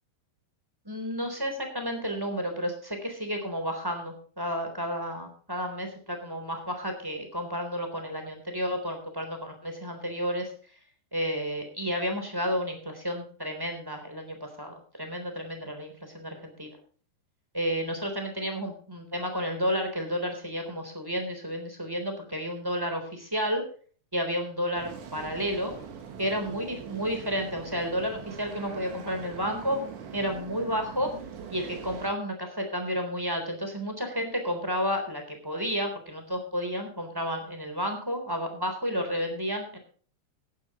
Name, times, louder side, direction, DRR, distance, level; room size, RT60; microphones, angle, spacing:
voice 1, 0.8-10.5 11.1-16.7 17.5-23.6 24.1-25.7 26.2-29.8 30.1-31.1 31.5-39.8, equal, 5° right, 5 dB, 2.9 m, -31 dB
sound 1, 24.8-32.1, right 7 dB, 85° right, 4.2 m, -42 dB
16.5 x 11.5 x 3.0 m, 0.43 s
omnidirectional pair, 4.8 m